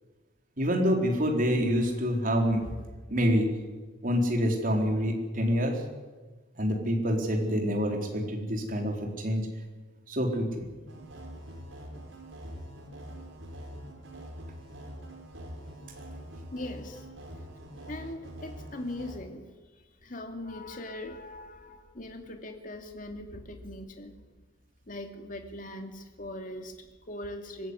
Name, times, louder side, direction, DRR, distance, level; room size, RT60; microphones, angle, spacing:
voice 1, 0.6-2.7 3.1-3.5 4.0-5.8 6.6-9.5 10.1-10.7, equal, 45° right, 2 dB, 4.1 m, -27 dB
sound 1, 10.9-19.2, equal, 75° right, 5.4 m, -44 dB
voice 2, 16.5-17.1 17.8-19.5 20.0-24.1 24.9-27.7, left 1 dB, 45° left, 4 dB, 2.6 m, -40 dB
24.0 x 15.0 x 9.8 m, 1.3 s
head